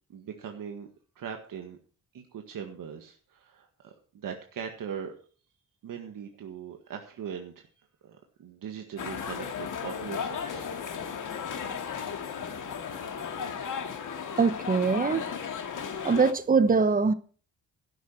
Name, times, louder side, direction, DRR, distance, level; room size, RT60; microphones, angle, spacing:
voice 1, 0.1-0.9 1.2-1.8 2.1-5.1 5.8-7.7 8.0-10.7, right 7 dB, 75° right, 1.7 m, -40 dB
sound 1, 9.0-16.3, left 7 dB, 65° left, 2.0 m, -35 dB
voice 2, 14.4-15.2 16.0-17.1, right 4 dB, 25° right, 0.9 m, -22 dB
13.0 x 10.5 x 4.4 m
wide cardioid pair, 145°, 33 cm